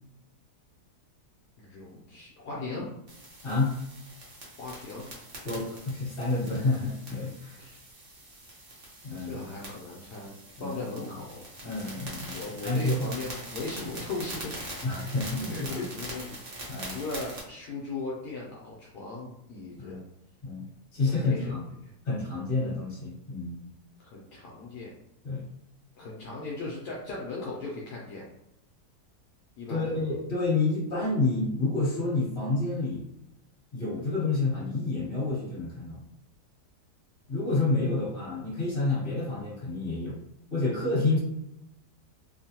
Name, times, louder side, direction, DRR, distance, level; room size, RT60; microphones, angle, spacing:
voice 1, 1.6-2.9 4.6-5.1 7.6-7.8 9.2-10.3 10.6-11.5 12.3-14.8 15.4-16.5 16.9-20.0 21.0-21.6 24.0-24.9 26.0-28.2 29.6-29.9, left 3 dB, 75° left, -4 dB, 1.2 m, -37 dB
sound 1, 3.1-17.4, right 1 dB, 45° right, 0.8 m, -43 dB
voice 2, 5.4-7.7 9.0-9.4 10.6-10.8 11.6-13.1 14.8-15.8 16.7-17.0 19.8-20.0 20.4-20.7 20.9-21.6 22.0-23.6 25.2-25.4 29.7-33.0 33.7-36.0 37.3-40.2 40.5-41.2, left 3 dB, 35° left, -6 dB, 1.5 m, -29 dB
3.1 x 2.1 x 2.8 m, 0.83 s
omnidirectional pair, 1.8 m